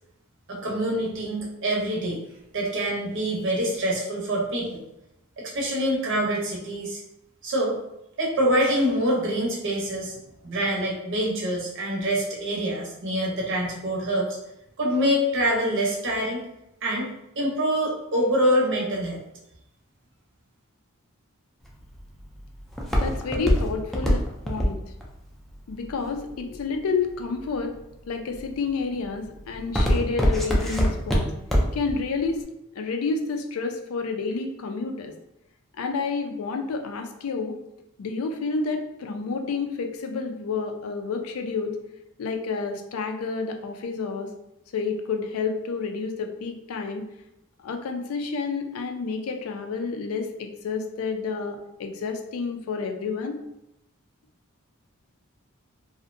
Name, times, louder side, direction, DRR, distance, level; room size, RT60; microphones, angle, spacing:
voice 1, 0.5-2.2 2.5-4.8 5.4-7.0 7.4-7.8 8.2-10.2 10.4-14.4 14.8-16.4 16.8-19.2, equal, 60° right, -2 dB, 0.7 m, -25 dB
Walk footsteps, 21.6-26.8 27.4-27.8 28.3-28.7 29.0-31.9 32.3-32.4, equal, ahead, 0.3 m, -23 dB
voice 2, 23.0-24.8 25.7-27.7 28.1-31.3 31.7-32.4 32.7-35.1 35.8-37.5 38.0-41.8 42.2-44.3 44.7-47.0 47.6-53.4, left 4 dB, 70° left, 4 dB, 0.4 m, -29 dB
2.6 x 2.1 x 2.5 m, 0.85 s
head